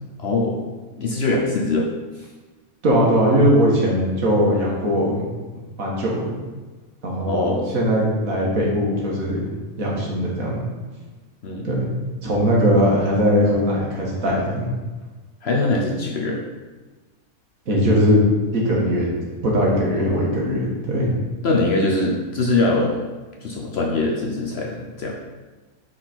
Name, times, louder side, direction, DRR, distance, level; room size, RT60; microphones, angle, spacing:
voice 1, 0.2-0.6 1.0-1.9 2.2-2.3 7.3-7.7 11.4-11.7 15.4-16.4 20.0-20.2 21.4-23.0 23.4-25.1, left 2 dB, 55° left, -1 dB, 0.9 m, -22 dB
voice 2, 2.8-5.2 5.8-6.4 7.0-9.5 9.8-10.6 11.6-11.9 12.2-14.7 17.7-18.2 18.5-19.1 19.4-21.1, equal, 65° right, -3 dB, 1.8 m, -20 dB
5.8 x 4.7 x 4.3 m, 1.3 s
omnidirectional pair, 1.6 m